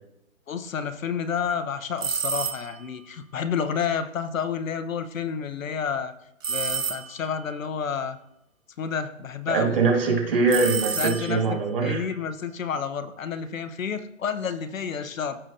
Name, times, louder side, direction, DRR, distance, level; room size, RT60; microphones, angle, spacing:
voice 1, 0.5-6.1 6.5-8.2 8.8-9.8 11.0-11.4 11.8-15.4, left 7 dB, 80° left, 11 dB, 0.9 m, -30 dB
sound 1, 2.0-2.9 6.4-7.4 10.5-11.6, right 6 dB, 75° right, 1.3 m, -30 dB
voice 2, 9.5-12.0, right 4 dB, 45° right, 0 dB, 2.2 m, -23 dB
14.5 x 5.0 x 2.8 m, 0.80 s
hypercardioid pair, 170°, 39 cm